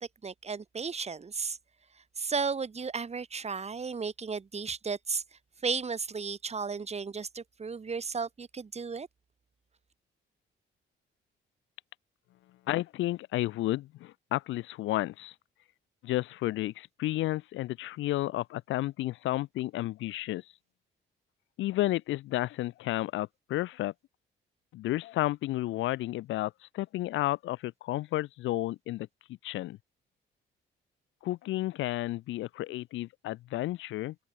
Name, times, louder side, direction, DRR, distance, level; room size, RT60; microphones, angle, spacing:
voice 1, 0.2-1.6 2.2-5.2 5.6-9.1, right 5 dB, 30° right, 2.2 m, -34 dB
voice 2, 12.7-15.3 16.0-20.4 21.6-23.9 24.7-29.8 31.2-34.2, left 16 dB, 75° left, 0.5 m, -32 dB
open air
cardioid pair, 90°, 20 cm